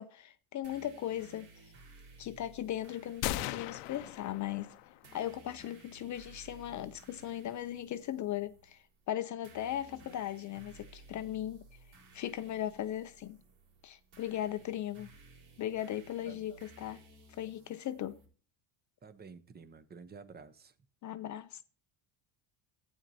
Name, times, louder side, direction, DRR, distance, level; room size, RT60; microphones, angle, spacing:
voice 1, 0.0-1.5 2.2-4.7 5.1-11.6 12.1-13.4 13.8-15.1 15.6-17.0 17.3-18.2 21.0-21.6, left 12 dB, 40° left, 0.4 m, -38 dB
sound 1, 0.6-18.3, right 3 dB, 80° right, 4.2 m, -57 dB
sound 2, 3.2-5.1, left 14 dB, 85° left, 0.7 m, -38 dB
voice 2, 19.0-20.7, right 5 dB, 20° right, 0.7 m, -51 dB
12.0 x 8.8 x 2.7 m
cardioid pair, 125°, 50 cm